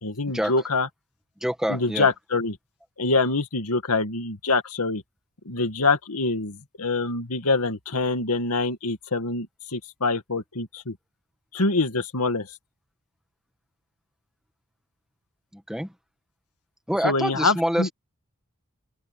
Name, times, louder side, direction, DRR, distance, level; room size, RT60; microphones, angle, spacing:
voice 1, 0.0-0.9 1.7-2.6 3.0-5.0 5.5-11.0 11.5-12.6 17.0-17.9, left 3 dB, 90° left, 2.1 m, -25 dB
voice 2, 1.4-2.1 15.5-15.9 16.9-17.9, equal, 5° right, 1.8 m, -26 dB
open air
head